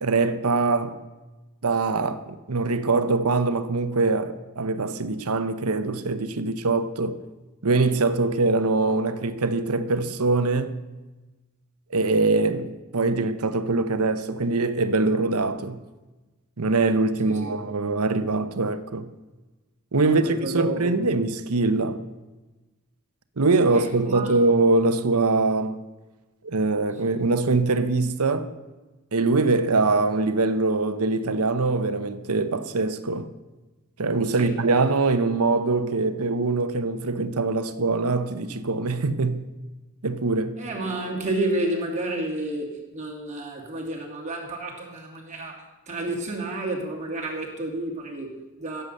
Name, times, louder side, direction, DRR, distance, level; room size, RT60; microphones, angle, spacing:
voice 1, 0.0-1.0 1.6-7.2 7.6-10.8 11.9-15.8 16.6-19.1 19.9-22.0 23.4-25.8 26.4-28.5 29.1-33.3 34.0-39.5 40.0-40.6, right 3 dB, 80° right, 0.9 m, -23 dB
voice 2, 17.2-17.6 20.0-21.1 23.7-24.3 34.4-34.5 40.6-48.8, right 2 dB, 35° right, 2.7 m, -31 dB
15.5 x 8.0 x 6.7 m
head